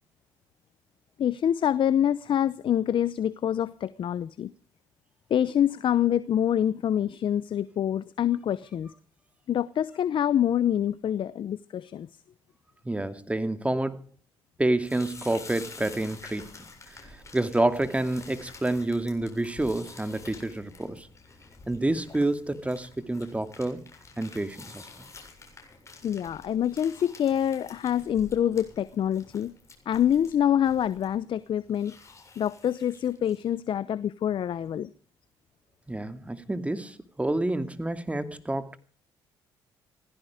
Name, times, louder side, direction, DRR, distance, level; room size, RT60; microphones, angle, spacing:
voice 1, 1.2-4.5 5.3-8.9 9.5-12.1 26.0-29.5 29.9-31.9 32.4-34.9, left 10 dB, 55° left, 17 dB, 0.8 m, -26 dB
voice 2, 12.8-14.0 14.6-16.6 17.1-21.1 21.7-23.8 24.2-24.9 35.9-38.8, right 2 dB, 15° right, 11 dB, 2.5 m, -28 dB
sound 1, 14.8-33.5, left 3 dB, 30° left, 7.4 m, -49 dB
18.0 x 15.5 x 5.0 m, 0.42 s
supercardioid pair, 70°, 10 cm